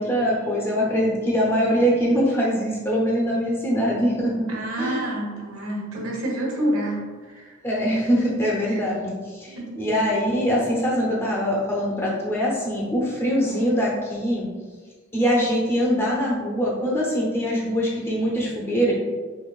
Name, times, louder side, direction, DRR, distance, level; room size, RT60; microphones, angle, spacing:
voice 1, 0.0-4.5 4.8-5.0 7.6-14.5 15.1-18.9, equal, 10° left, -4 dB, 0.8 m, -23 dB
voice 2, 4.5-7.6 8.7-8.8 9.5-9.8, right 1 dB, 85° right, -3 dB, 1.2 m, -28 dB
5.3 x 2.8 x 2.4 m, 1.4 s
head